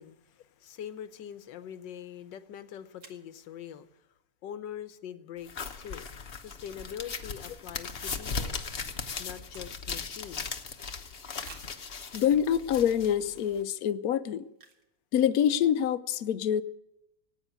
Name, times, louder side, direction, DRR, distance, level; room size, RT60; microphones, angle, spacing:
voice 1, 0.0-4.0 4.4-6.1 6.4-8.6 9.2-10.7, left 9 dB, 85° left, 12 dB, 1.6 m, -43 dB
sound 1, 3.0-3.3 6.3-6.5 6.8-6.9 7.1-8.6 8.9-10.1 10.6-10.7 11.4-11.9 12.6-12.7 13.2-13.3 14.5-15.0 15.2-15.3 15.5-15.8, right 4 dB, 65° right, 2.2 m, -54 dB
sound 2, 5.5-13.6, left 5 dB, 40° left, 1.1 m, -38 dB
voice 2, 12.1-14.4 15.1-16.6, left 9 dB, 65° left, 12 dB, 1.0 m, -26 dB
18.5 x 9.0 x 8.1 m, 0.86 s
omnidirectional pair, 1.9 m